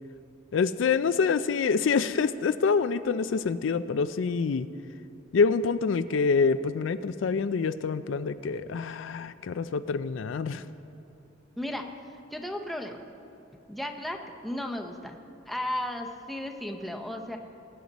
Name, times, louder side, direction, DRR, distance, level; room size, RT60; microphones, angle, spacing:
voice 1, 0.5-4.7 5.3-10.6, left 5 dB, 70° left, 13 dB, 0.4 m, -26 dB
voice 2, 11.6-11.9 12.3-13.0 13.7-15.2 15.4-17.4, left 1 dB, ahead, 3 dB, 0.8 m, -34 dB
21.0 x 9.4 x 4.1 m, 2.8 s
head